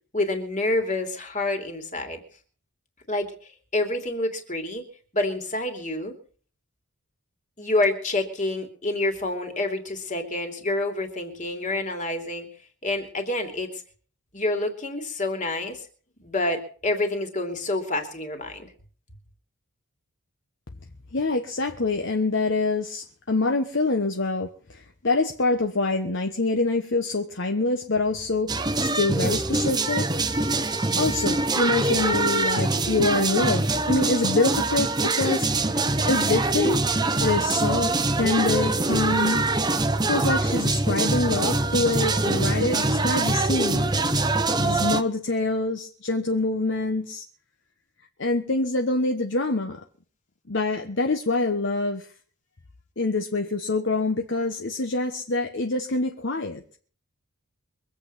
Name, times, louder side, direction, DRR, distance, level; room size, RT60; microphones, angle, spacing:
voice 1, 0.1-2.2 3.1-4.8 5.1-6.1 7.6-12.5 12.8-13.8 14.3-15.9 16.2-18.7, left 2 dB, 35° left, 5 dB, 2.9 m, -28 dB
voice 2, 21.1-28.5 28.8-30.2 30.6-36.8 37.2-39.5 40.1-43.9 44.6-47.2 48.2-49.8 50.5-52.1 53.0-56.6, left 3 dB, 55° left, 4 dB, 1.2 m, -25 dB
sound 1, 28.5-45.0, right 2 dB, 20° right, 0.8 m, -24 dB
24.0 x 8.3 x 5.7 m, 0.44 s
head